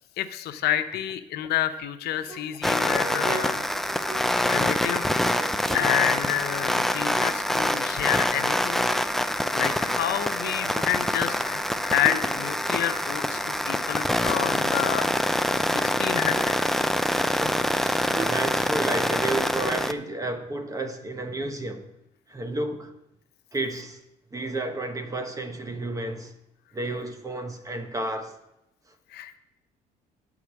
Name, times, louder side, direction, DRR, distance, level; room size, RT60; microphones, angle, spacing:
voice 1, 0.2-3.6 4.5-5.2 5.7-8.8 9.5-15.1 15.7-16.5 29.1-29.4, left 11 dB, 75° left, 0.7 m, -29 dB
sound 1, 2.0-4.7 5.1-8.0 8.3-9.7 10.0-12.3 12.6-15.2 15.5-15.6 15.9-19.3, right 4 dB, 40° right, 4.1 m, -42 dB
sound 2, 2.6-19.9, left 1 dB, ahead, 0.4 m, -25 dB
voice 2, 17.4-21.8 22.3-22.9 23.5-24.0 24.3-26.3 26.7-28.4, right 2 dB, 20° right, 1.1 m, -32 dB
9.4 x 4.9 x 7.1 m
cardioid pair, 110°, 17 cm